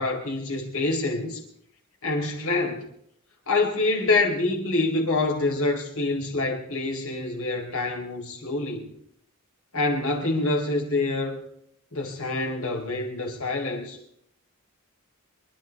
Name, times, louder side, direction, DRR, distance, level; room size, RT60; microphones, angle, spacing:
voice 1, 0.0-1.4 2.0-2.8 3.5-8.9 9.7-11.4 11.9-14.0, left 2 dB, 65° left, 2 dB, 4.3 m, -26 dB
25.5 x 13.0 x 3.6 m, 0.69 s
head